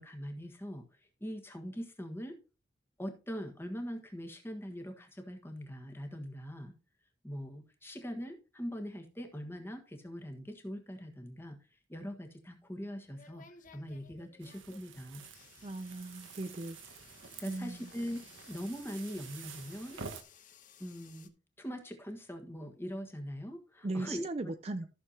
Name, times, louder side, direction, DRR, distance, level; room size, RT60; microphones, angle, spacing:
voice 1, 0.0-2.4 3.0-6.7 7.2-11.6 11.9-13.4 13.7-15.2 17.4-18.2 18.5-20.0 20.8-21.3 21.6-24.5, equal, 10° left, 4 dB, 1.4 m, -42 dB
sound 1, 12.3-21.3, left 6 dB, 40° left, 0.9 m, -59 dB
sound 2, 14.4-20.2, right 5 dB, 85° right, 1.3 m, -49 dB
voice 2, 15.6-16.8 17.5-17.8 23.8-24.9, right 2 dB, 30° right, 10 dB, 0.5 m, -38 dB
14.0 x 6.6 x 2.8 m, 0.32 s
head